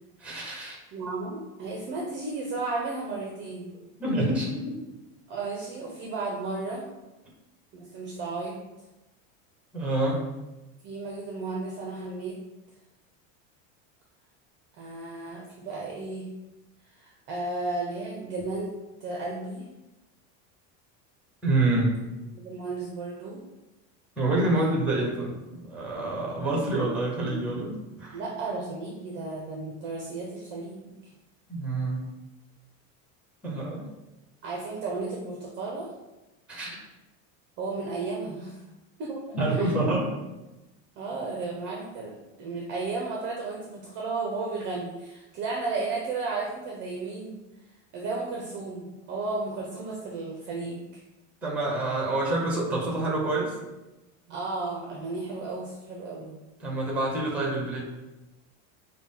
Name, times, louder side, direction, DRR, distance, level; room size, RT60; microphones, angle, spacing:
voice 1, 0.2-0.8 4.0-4.7 9.7-10.2 21.4-22.0 24.2-28.2 31.5-32.0 33.4-33.9 36.5-36.8 39.3-40.1 51.4-53.5 56.6-57.8, right 2 dB, 5° right, -2 dB, 0.9 m, -27 dB
voice 2, 0.9-3.7 5.3-6.8 7.7-8.6 10.8-12.4 14.8-16.3 16.9-18.7 19.0-19.6 22.4-23.4 28.1-30.9 34.4-35.9 37.6-38.6 39.0-39.7 41.0-47.4 47.9-50.9 54.3-56.4, right 3 dB, 30° right, -2 dB, 0.5 m, -34 dB
5.9 x 2.2 x 3.6 m, 1.0 s
cardioid pair, 170°, 36 cm